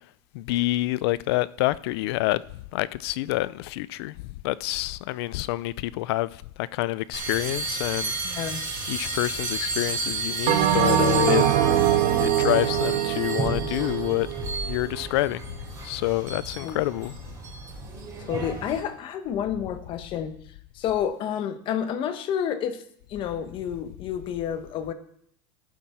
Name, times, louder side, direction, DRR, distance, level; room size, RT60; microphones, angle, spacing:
voice 1, 0.3-2.4 2.7-4.1 4.4-6.3 6.6-8.4 8.9-11.4 12.2-15.6 15.8-17.1, left 18 dB, 70° left, 0.5 m, -27 dB
sound 1, 7.1-18.8, right 3 dB, 25° right, 3.3 m, -33 dB
voice 2, 8.2-8.6 16.6-16.8 18.2-20.3 20.7-22.8 23.1-24.9, left 9 dB, 40° left, 1.0 m, -29 dB
Bell, 10.5-15.1, right 10 dB, 55° right, 1.0 m, -23 dB
16.5 x 7.5 x 4.3 m
supercardioid pair, 155°, 13 cm